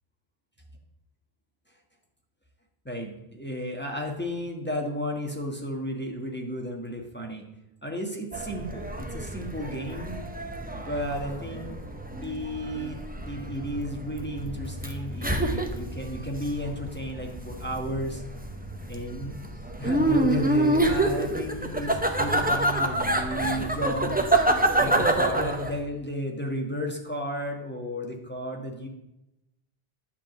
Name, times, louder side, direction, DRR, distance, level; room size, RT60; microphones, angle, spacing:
voice 1, 2.8-7.4 7.8-10.2 10.7-11.8 12.2-18.2 18.9-19.3 19.7-24.2 24.8-28.9, equal, 10° left, 1 dB, 1.4 m, -33 dB
sound 1, 8.3-25.8, right 1 dB, 10° right, 0.8 m, -27 dB
10.0 x 5.1 x 7.7 m, 0.90 s
omnidirectional pair, 1.0 m